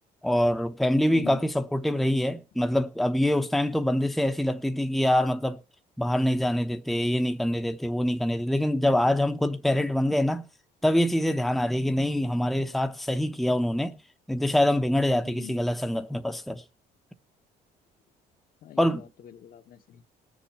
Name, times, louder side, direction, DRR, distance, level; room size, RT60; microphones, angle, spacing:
voice 1, 0.2-5.6 6.0-10.4 10.8-14.0 14.3-16.6 18.8-19.0, left 1 dB, ahead, 0.9 m, -25 dB
voice 2, 1.0-1.4 15.2-15.6 18.6-20.1, left 10 dB, 60° left, 1.3 m, -43 dB
19.5 x 7.2 x 5.7 m
cardioid pair, 110°, 17 cm